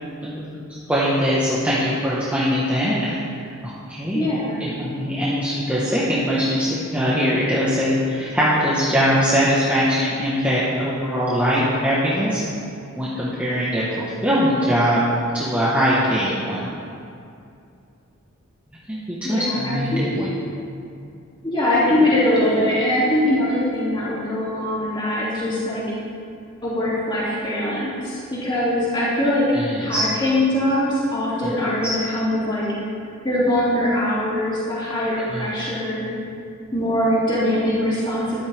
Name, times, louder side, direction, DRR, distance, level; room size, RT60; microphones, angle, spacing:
voice 1, 0.9-3.2 3.6-4.3 4.6-12.4 13.0-15.0 15.3-16.7 18.9-20.3 29.5-30.0 31.4-31.5 35.3-35.5, equal, 5° right, -9 dB, 1.5 m, -21 dB
voice 2, 4.1-4.6 19.2-20.2 21.4-25.8 26.6-32.7 33.2-36.1 36.7-38.4, left 1 dB, 25° left, -9 dB, 3.1 m, -22 dB
13.5 x 12.0 x 3.7 m, 2.5 s
head